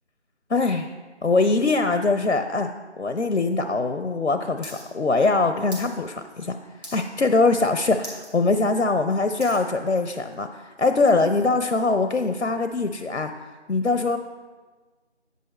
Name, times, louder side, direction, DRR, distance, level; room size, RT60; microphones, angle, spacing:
voice 1, 0.5-0.9 1.2-2.7 3.0-6.6 6.9-13.3 13.7-14.2, left 3 dB, 90° left, 8 dB, 0.8 m, -22 dB
sound 1, 4.6-4.8 5.1-5.9 6.3-6.5 6.8-7.3 7.6-7.7 8.0-8.3 8.7-9.7 10.3-10.4, equal, 35° right, 2.4 m, -40 dB
9.6 x 8.5 x 4.3 m, 1.4 s
figure-of-eight pair, 175°, 35 cm